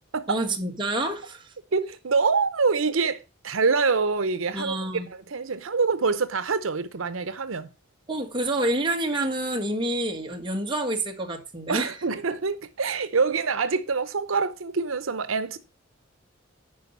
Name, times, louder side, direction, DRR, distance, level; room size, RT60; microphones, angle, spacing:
voice 1, 0.3-1.5 4.5-5.1 8.1-11.9, right 1 dB, 25° right, 1.7 m, -28 dB
voice 2, 1.7-4.8 5.1-7.7 11.7-15.6, right 4 dB, 85° right, 0.7 m, -25 dB
10.5 x 4.7 x 5.4 m
head